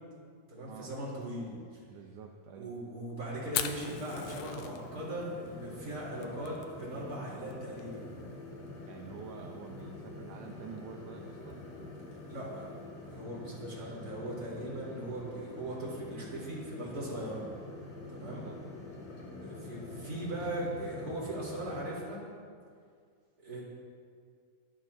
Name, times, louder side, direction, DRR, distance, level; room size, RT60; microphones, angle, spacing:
voice 1, 0.5-1.8 2.5-8.1 12.3-12.8 13.1-17.5 18.1-18.5 19.4-22.2 23.4-23.6, right 1 dB, 25° right, -7 dB, 4.5 m, -39 dB
voice 2, 1.9-2.7 8.9-11.6 18.3-18.6, right 7 dB, 75° right, 1 dB, 2.0 m, -48 dB
sound 1, 3.3-21.9, left 2 dB, 45° left, 3.7 m, -46 dB
Fire, 3.5-13.2, left 10 dB, 90° left, 1.7 m, -44 dB
24.5 x 12.0 x 3.0 m, 2.1 s
omnidirectional pair, 4.4 m